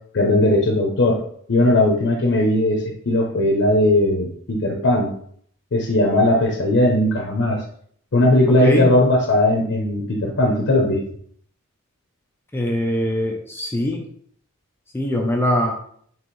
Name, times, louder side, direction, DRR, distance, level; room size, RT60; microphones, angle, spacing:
voice 1, 0.1-1.2 1.5-5.1 5.7-7.6 8.1-11.0, left 1 dB, 55° left, 0 dB, 0.7 m, -18 dB
voice 2, 8.5-8.9 12.5-14.0 14.9-15.7, left 1 dB, 10° left, 1 dB, 0.4 m, -22 dB
4.3 x 3.1 x 3.1 m, 0.62 s
head